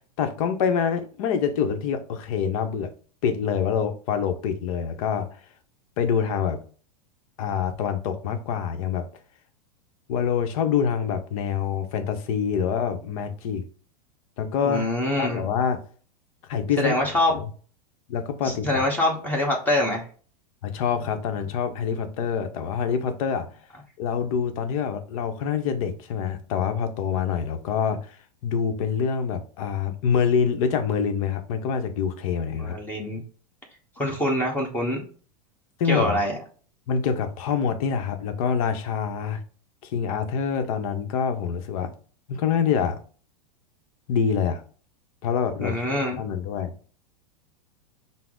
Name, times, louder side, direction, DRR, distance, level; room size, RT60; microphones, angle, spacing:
voice 1, 0.2-2.9 3.2-5.4 6.0-6.6 7.4-9.1 10.1-13.6 14.4-14.9 15.2-15.8 16.5-16.9 17.3-17.5 18.1-18.9 20.6-23.5 24.0-28.2 28.4-32.8 35.8-36.2 36.9-39.4 39.8-41.9 42.3-43.0 44.1-44.6 45.2-45.9 46.2-46.7, left 7 dB, 60° left, 0.7 m, -26 dB
voice 2, 14.6-15.4 16.8-17.4 18.4-20.1 32.5-33.2 34.0-35.0 35.9-36.4 45.6-46.2, left 1 dB, 10° left, 1.1 m, -25 dB
5.7 x 2.0 x 3.7 m
hypercardioid pair, 120°, 20 cm